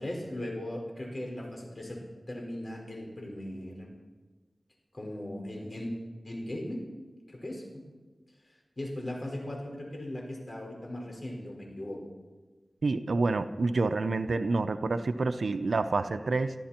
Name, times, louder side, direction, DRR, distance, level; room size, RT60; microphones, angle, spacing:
voice 1, 0.0-2.0 2.3-3.9 4.9-5.9 6.2-6.8 7.3-7.9 8.8-12.0, left 1 dB, 50° left, 0 dB, 5.1 m, -38 dB
voice 2, 12.8-16.5, right 3 dB, 90° right, 10 dB, 0.6 m, -28 dB
22.0 x 14.0 x 4.5 m, 1.2 s
wide cardioid pair, 50°, 0 cm